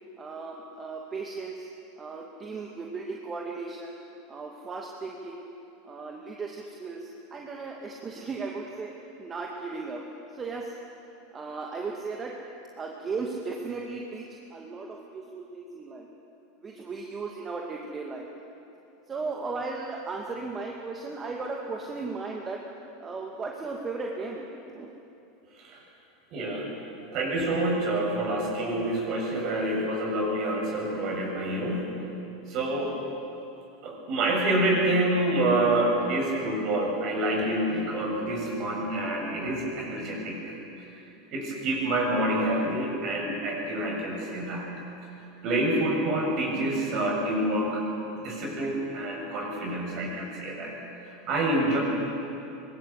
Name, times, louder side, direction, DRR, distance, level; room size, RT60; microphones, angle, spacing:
voice 1, 0.2-1.7 2.0-4.0 4.3-5.5 5.8-8.9 9.2-10.0 10.3-10.8 11.3-12.3 12.8-16.1 16.6-18.3 19.1-22.6 23.0-24.9, right 4 dB, 25° right, 0 dB, 2.3 m, -36 dB
voice 2, 26.3-26.8 27.1-31.9 32.5-33.0 33.8-40.4 40.8-40.9 41.3-44.7 45.4-47.9 48.1-50.7 51.3-51.8, right 1 dB, 45° right, 0 dB, 7.3 m, -27 dB
24.5 x 20.0 x 8.3 m, 2.8 s
figure-of-eight pair, 80°, 0 cm